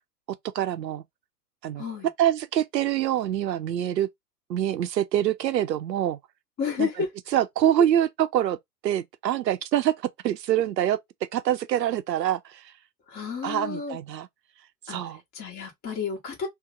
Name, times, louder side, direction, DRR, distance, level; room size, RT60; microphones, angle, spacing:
voice 1, 0.5-1.0 1.6-4.1 4.5-6.2 6.8-7.1 7.3-8.6 8.8-10.0 10.2-11.0 11.3-12.6 13.4-14.3 14.9-15.2, right 11 dB, 80° right, 0.7 m, -25 dB
voice 2, 1.8-2.1 6.6-7.1 13.1-14.0 14.9-15.0 15.3-16.5, left 6 dB, 20° left, 1.1 m, -31 dB
2.9 x 2.1 x 3.7 m
hypercardioid pair, 125°, 49 cm